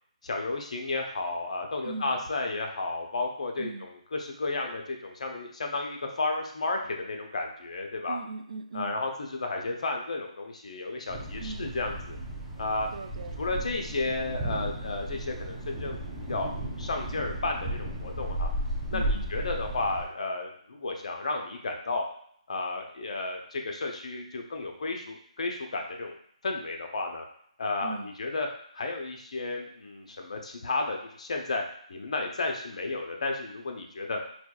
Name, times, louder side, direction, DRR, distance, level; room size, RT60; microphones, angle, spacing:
voice 1, 0.2-8.2 8.7-12.2 12.6-12.9 13.4-16.5 16.8-18.5 18.9-22.0 22.5-26.1 26.4-27.2 27.6-28.5 28.7-31.6 31.9-34.2, left 3 dB, 65° left, 2 dB, 0.6 m, -32 dB
voice 2, 1.8-2.2 3.6-3.9 8.1-9.0 11.4-11.7 12.9-13.4 18.9-19.4 27.8-28.1, right 3 dB, 65° right, 7 dB, 0.3 m, -39 dB
Thunder, 11.1-20.0, right 1 dB, 5° right, 0.5 m, -34 dB
4.2 x 2.3 x 2.3 m, 0.65 s
hypercardioid pair, 165°, 4 cm